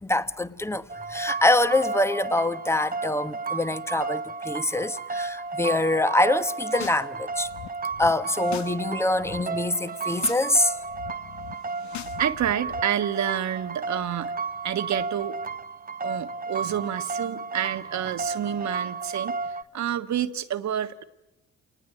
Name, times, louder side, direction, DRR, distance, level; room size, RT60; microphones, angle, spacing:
voice 1, 0.0-7.5 8.0-10.7, left 2 dB, 10° left, 1.1 m, -24 dB
sound 1, 0.9-19.6, right 4 dB, 30° right, 1.3 m, -33 dB
sound 2, 6.5-7.0 7.3-8.8 9.0-9.4 9.9-10.5 10.7-12.8, left 10 dB, 70° left, 1.2 m, -41 dB
voice 2, 12.2-14.4 14.6-15.4 16.0-21.0, right 10 dB, 65° right, 1.6 m, -29 dB
28.5 x 20.0 x 9.2 m
cardioid pair, 90°, 30 cm